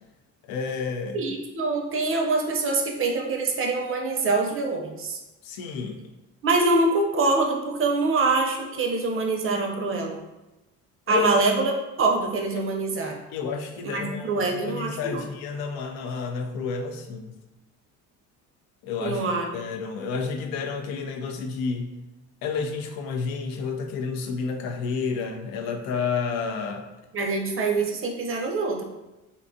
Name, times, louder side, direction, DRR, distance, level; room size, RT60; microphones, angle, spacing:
voice 1, 0.4-1.2 5.4-6.1 11.1-11.3 12.6-12.7 13.3-17.3 18.8-19.3 19.5-22.0 22.4-26.9, left 5 dB, 80° left, 5 dB, 0.5 m, -30 dB
voice 2, 1.1-5.2 6.4-10.2 11.1-11.7 12.0-13.2 13.8-15.2 19.0-19.5 27.1-28.8, right 3 dB, 40° right, 1 dB, 0.5 m, -24 dB
2.6 x 2.2 x 2.6 m, 1.0 s
supercardioid pair, 80°, 35 cm